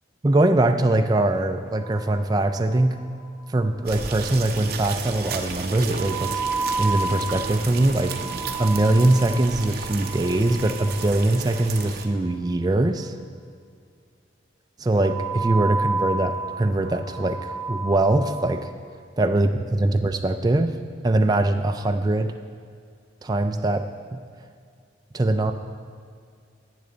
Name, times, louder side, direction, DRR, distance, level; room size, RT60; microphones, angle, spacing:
voice 1, 0.2-3.0 3.5-8.1 8.6-13.1 14.8-18.6 19.2-20.7 21.0-22.3 23.2-23.9 24.1-24.2 25.1-25.5, right 2 dB, 20° right, 6 dB, 0.3 m, -22 dB
sound 1, 1.7-2.7 3.0-3.1 3.3-3.4 6.0-12.1 15.0-18.6, right 3 dB, 30° left, 1.8 m, -31 dB
sound 2, 3.9-12.1, right 5 dB, 50° right, 0.7 m, -34 dB
10.5 x 8.6 x 3.9 m, 2.2 s
head